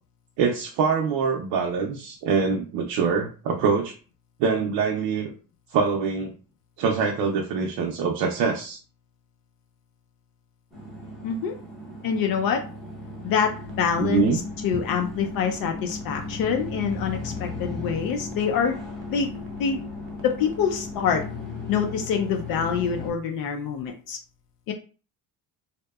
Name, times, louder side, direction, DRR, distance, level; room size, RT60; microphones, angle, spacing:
voice 1, 0.4-3.9 4.4-5.3 5.7-6.3 6.8-8.8 14.0-14.4, right 5 dB, 85° right, 1 dB, 0.6 m, -24 dB
sound 1, 10.7-23.1, left 3 dB, ahead, 0.7 m, -37 dB
voice 2, 11.2-11.5 12.0-12.6 13.2-18.8 19.1-19.3 19.6-19.8 20.2-21.2 21.7-24.2 24.7-24.8, left 7 dB, 65° left, 3 dB, 0.5 m, -26 dB
sound 2, 13.6-21.3, left 4 dB, 35° right, 0.5 m, -39 dB
2.7 x 2.1 x 2.2 m, 0.37 s
cardioid pair, 145°, 39 cm